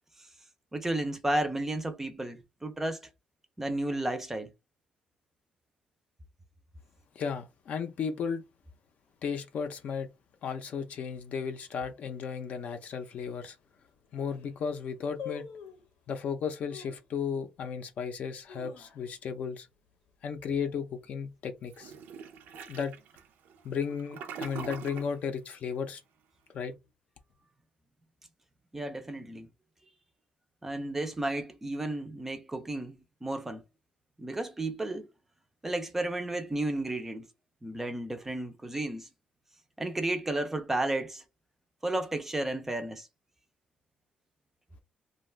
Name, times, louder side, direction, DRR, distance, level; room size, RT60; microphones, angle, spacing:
voice 1, 0.7-3.1 3.6-4.5 28.7-29.5 30.6-33.6 34.2-35.1 35.6-37.3 37.6-39.1 39.8-41.2 41.8-43.1, right 1 dB, 10° right, 0.4 m, -33 dB
voice 2, 7.2-8.4 9.2-10.1 10.4-13.6 14.1-15.5 16.1-19.7 20.2-21.9 22.5-23.0 23.6-26.0 26.5-26.7, left 6 dB, 55° left, 0.5 m, -34 dB
sound 1, 13.2-13.3 13.9-14.0 14.2-14.6 15.2-15.9 16.7-17.1 17.6-17.7 18.2-19.4 19.7-19.8 20.1-20.5 20.9-21.2 21.9-22.6 22.9-23.0, left 7 dB, 80° left, 0.7 m, -45 dB
Toilet flush, 21.7-25.2, right 6 dB, 80° right, 0.5 m, -43 dB
2.5 x 2.2 x 3.1 m
cardioid pair, 155°, 3 cm